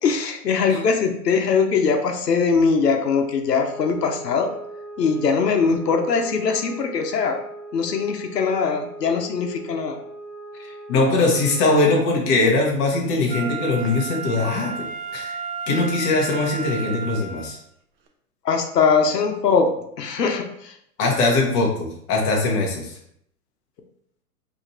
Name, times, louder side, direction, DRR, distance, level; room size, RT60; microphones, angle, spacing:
voice 1, 0.0-4.5 5.0-7.4 7.7-10.0 18.4-19.7 20.0-20.7, left 5 dB, 85° left, 4 dB, 0.7 m, -21 dB
sound 1, 3.5-11.9, right 2 dB, ahead, 0.9 m, -39 dB
voice 2, 10.9-14.9 15.1-15.4 15.7-17.6 21.0-22.9, left 2 dB, 20° left, -1 dB, 0.5 m, -21 dB
Wind instrument woodwind instrument, 13.3-17.6 18.1-18.2, right 6 dB, 40° right, 0.6 m, -32 dB
2.8 x 2.5 x 4.2 m, 0.72 s
hypercardioid pair, 120°, 47 cm